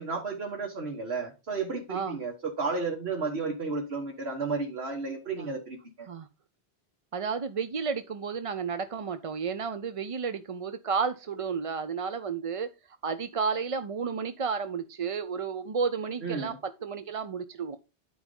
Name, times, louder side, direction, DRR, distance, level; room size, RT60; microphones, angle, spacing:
voice 1, 0.0-6.1 16.2-16.6, right 4 dB, 75° right, 1.8 m, -33 dB
voice 2, 1.9-2.2 5.4-5.5 6.1-6.3 7.1-12.7 13.0-17.8, right 5 dB, 40° right, 0.5 m, -32 dB
11.0 x 4.8 x 5.3 m
omnidirectional pair, 1.1 m